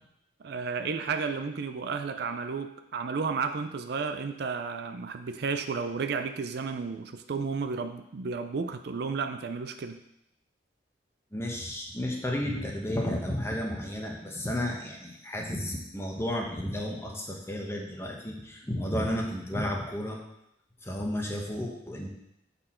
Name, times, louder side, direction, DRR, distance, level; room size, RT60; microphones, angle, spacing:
voice 1, 0.4-10.0, right 5 dB, 60° right, 8 dB, 0.4 m, -32 dB
voice 2, 11.3-20.2 20.8-22.1, left 1 dB, 15° left, 0 dB, 1.0 m, -32 dB
7.6 x 4.3 x 4.4 m, 0.80 s
head